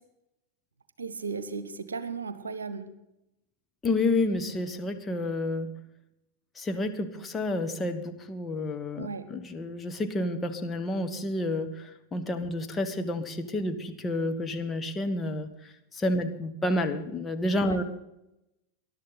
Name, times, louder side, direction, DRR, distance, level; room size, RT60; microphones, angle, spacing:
voice 1, 1.0-2.9 9.0-9.3 17.6-17.8, right 5 dB, 75° right, 13 dB, 1.1 m, -35 dB
voice 2, 3.8-5.8 6.6-17.8, left 2 dB, 15° left, 6 dB, 1.2 m, -30 dB
20.0 x 11.5 x 4.1 m, 0.88 s
figure-of-eight pair, 90°, 0 cm